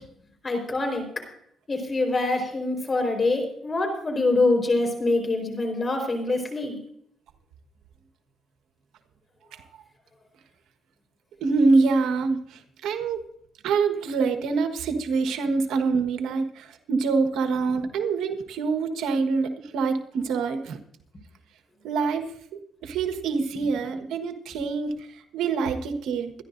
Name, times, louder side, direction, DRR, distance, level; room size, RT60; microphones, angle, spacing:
voice 1, 0.4-1.0 1.7-6.8 23.6-23.7, left 2 dB, 30° left, 4 dB, 4.3 m, -25 dB
voice 2, 11.4-13.2 13.6-20.8 21.8-22.3 22.8-26.3, right 4 dB, 85° right, 7 dB, 1.4 m, -25 dB
24.5 x 11.0 x 2.6 m, 0.70 s
cardioid pair, 90°, 0 cm